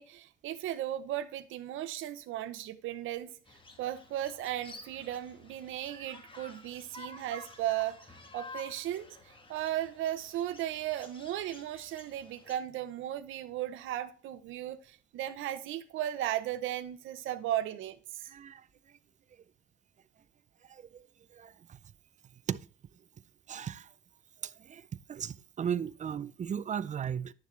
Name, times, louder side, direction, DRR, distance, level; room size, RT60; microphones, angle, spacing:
voice 1, 0.0-3.3 3.8-18.3, right 12 dB, 90° right, 0.8 m, -36 dB
sound 1, 3.5-12.6, left 2 dB, 25° left, 1.2 m, -51 dB
voice 2, 18.3-18.6 20.7-21.0 21.3-21.5 22.5-22.6 23.5-23.9 24.4-24.8 25.1-27.3, right 8 dB, 40° right, 0.4 m, -36 dB
10.5 x 6.7 x 3.2 m
cardioid pair, 90°, 20 cm